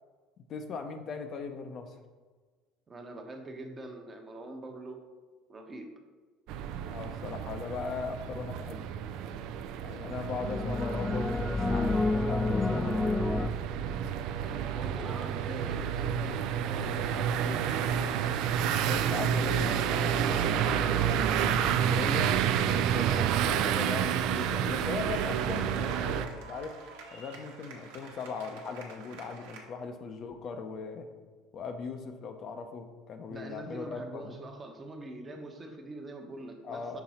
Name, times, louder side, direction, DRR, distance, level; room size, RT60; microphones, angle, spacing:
voice 1, 0.5-1.9 6.9-8.9 9.8-13.2 18.8-26.8 27.1-31.1 31.5-34.4 36.6-37.0, left 5 dB, 50° left, 6 dB, 0.6 m, -39 dB
voice 2, 2.9-5.0 5.5-5.9 14.4-17.7 33.3-37.0, right 2 dB, 25° right, 4 dB, 0.9 m, -43 dB
sound 1, 6.5-26.3, right 9 dB, 70° right, 0.3 m, -30 dB
sound 2, 8.1-8.9 10.1-13.5, left 2 dB, 15° left, 0.3 m, -30 dB
sound 3, 17.6-29.6, right 4 dB, 90° right, 1.1 m, -48 dB
5.9 x 3.8 x 4.2 m, 1.4 s
supercardioid pair, 105°, 0 cm